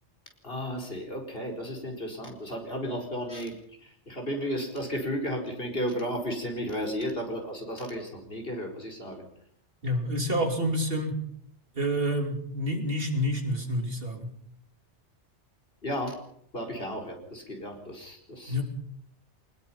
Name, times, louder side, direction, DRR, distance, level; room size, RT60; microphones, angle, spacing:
voice 1, 0.4-9.3 15.8-16.2 16.5-18.6, equal, 55° left, 1 dB, 4.7 m, -34 dB
voice 2, 9.8-11.2 11.7-14.3 18.5-18.6, equal, 55° right, 4 dB, 3.2 m, -28 dB
24.0 x 20.5 x 5.7 m, 0.68 s
omnidirectional pair, 1.2 m